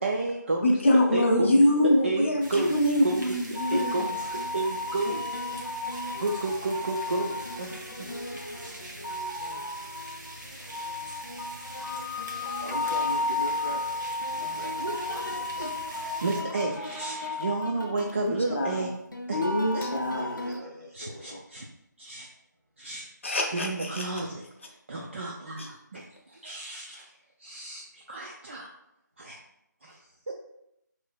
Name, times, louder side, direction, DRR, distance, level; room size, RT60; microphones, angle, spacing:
voice 1, 0.0-0.8 1.1-3.3 3.7-4.2 4.5-5.2 6.2-8.4 10.5-11.1 14.4-14.9 15.2-18.9 19.3-19.5 19.7-19.8 20.9-21.6 22.0-22.3 22.8-23.1 23.5-27.1 27.4-28.7 29.2-29.4 29.8-30.0 30.3-30.4, right 2 dB, 40° right, -1 dB, 0.4 m, -32 dB
voice 2, 0.6-4.1 18.2-18.9 19.3-20.3 23.2-24.0 25.6-25.7, left 1 dB, 40° left, 1 dB, 0.6 m, -24 dB
sound 1, 2.4-16.4, right 1 dB, 75° right, 1.1 m, -44 dB
sound 2, 3.6-20.6, left 2 dB, 85° left, 0.6 m, -34 dB
voice 3, 12.6-15.5 20.1-21.4, equal, 55° right, -1 dB, 1.1 m, -41 dB
4.9 x 3.2 x 2.2 m, 0.81 s
figure-of-eight pair, 160°, 10 cm